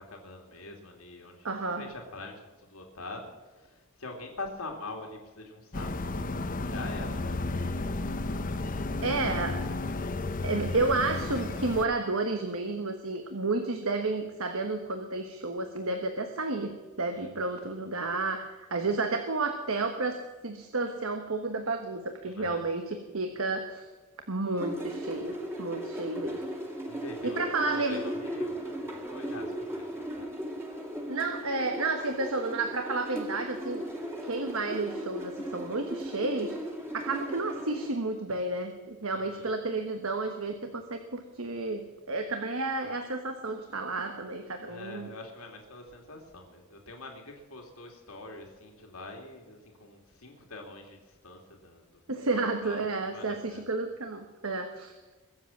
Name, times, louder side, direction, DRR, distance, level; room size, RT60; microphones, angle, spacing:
voice 1, 0.0-1.5 1.8-6.3 6.6-7.5 7.8-9.5 9.9-10.3 17.1-17.6 22.2-22.6 26.8-28.6 28.8-30.3 39.1-39.5 44.7-52.0 52.6-53.6, left 2 dB, 80° left, 2 dB, 2.6 m, -45 dB
voice 2, 1.4-1.9 9.0-9.6 10.4-16.7 17.0-20.2 20.4-23.9 24.3-26.4 27.2-28.0 31.1-33.8 34.2-36.6 36.9-41.8 42.1-45.1 52.1-54.9, right 3 dB, 75° right, 6 dB, 1.3 m, -31 dB
sound 1, 5.7-11.9, left 2 dB, 40° left, 0.8 m, -33 dB
sound 2, 24.6-37.9, equal, 10° right, 2.5 m, -37 dB
22.5 x 7.9 x 7.3 m, 1.2 s
head